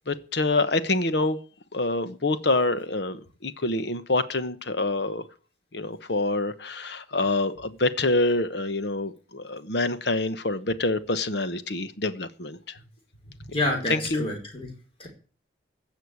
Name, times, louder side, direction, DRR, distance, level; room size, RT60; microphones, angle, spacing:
voice 1, 0.1-1.4 1.7-5.2 5.7-12.6 13.9-14.3, left 2 dB, 60° left, 12 dB, 1.1 m, -26 dB
voice 2, 13.4-14.7 15.0-15.1, left 1 dB, 30° left, 1 dB, 5.0 m, -28 dB
16.0 x 6.6 x 8.5 m, 0.40 s
head